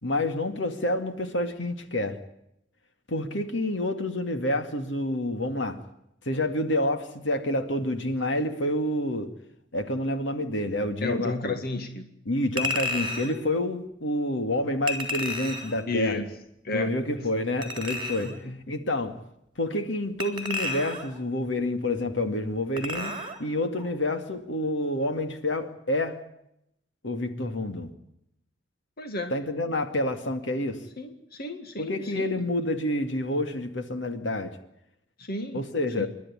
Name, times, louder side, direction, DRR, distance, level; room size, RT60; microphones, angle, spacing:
voice 1, 0.0-2.2 3.1-5.8 6.2-9.3 9.7-11.6 12.3-16.2 16.7-18.3 18.7-19.2 19.6-23.1 23.4-26.2 27.0-27.9 29.3-30.8 31.8-34.6 35.5-36.1, left 1 dB, 70° left, 7 dB, 2.3 m, -28 dB
voice 2, 11.0-12.1 15.9-16.3 16.6-17.0 18.2-18.8 29.0-29.3 31.0-32.5 35.2-35.7 36.0-36.1, left 2 dB, 55° left, 6 dB, 2.1 m, -33 dB
Chink clink, 12.6-13.3 14.9-15.8 17.6-18.4 20.2-21.2 22.8-23.4 23.8-23.9, left 2 dB, 25° right, 3.6 m, -32 dB
28.0 x 12.0 x 9.9 m, 0.78 s
head